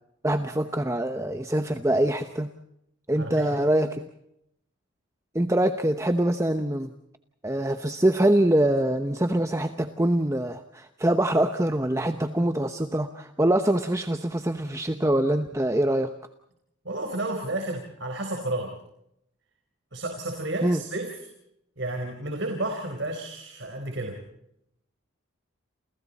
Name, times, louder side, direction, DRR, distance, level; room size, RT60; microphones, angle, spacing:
voice 1, 0.2-2.5 3.1-4.0 5.3-6.9 7.4-16.1 20.6-20.8, right 1 dB, 15° right, 7 dB, 0.9 m, -24 dB
voice 2, 3.2-3.6 16.8-18.7 19.9-21.3 21.8-24.2, right 2 dB, 55° right, 4 dB, 4.2 m, -31 dB
30.0 x 29.0 x 4.2 m, 0.79 s
head